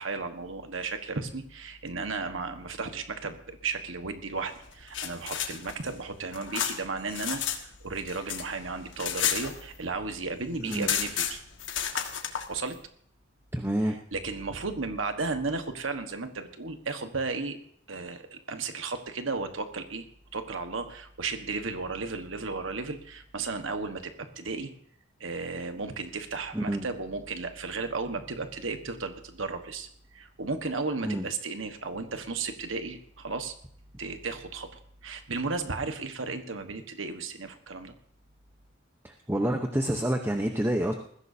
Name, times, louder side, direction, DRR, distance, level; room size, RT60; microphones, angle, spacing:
voice 1, 0.0-11.4 12.5-12.8 14.1-17.6 17.9-20.1 20.3-24.7 25.2-29.9 30.1-33.5 34.0-37.9, right 4 dB, 85° right, 7 dB, 1.4 m, -34 dB
sound 1, 4.7-7.6 7.9-10.0 10.3-10.4 10.6-12.5, left 9 dB, 70° left, 1.6 m, -32 dB
voice 2, 13.5-14.0 26.5-26.9 31.0-31.3 39.0-40.9, right 1 dB, 10° right, 4 dB, 0.9 m, -28 dB
20.5 x 15.5 x 2.8 m, 0.63 s
head